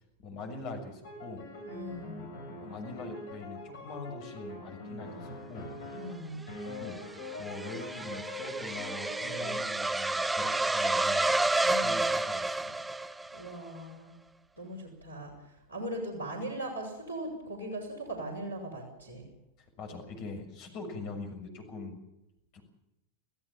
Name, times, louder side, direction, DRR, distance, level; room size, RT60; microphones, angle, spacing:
voice 1, 0.0-1.5 2.6-5.7 6.8-7.0 7.4-11.3 11.8-12.8 19.8-22.0 22.5-22.6, left 3 dB, 45° left, 5 dB, 6.7 m, -43 dB
sound 1, 1.0-9.6, left 1 dB, 60° left, 7.3 m, -43 dB
voice 2, 1.7-2.3 5.9-6.4 11.6-12.1 13.3-14.1 14.6-19.3, right 1 dB, 90° left, 2 dB, 6.6 m, -39 dB
sound 2, 6.4-13.5, right 2 dB, 10° right, 0.8 m, -30 dB
27.0 x 16.0 x 7.4 m, 0.91 s
figure-of-eight pair, 90°, 0 cm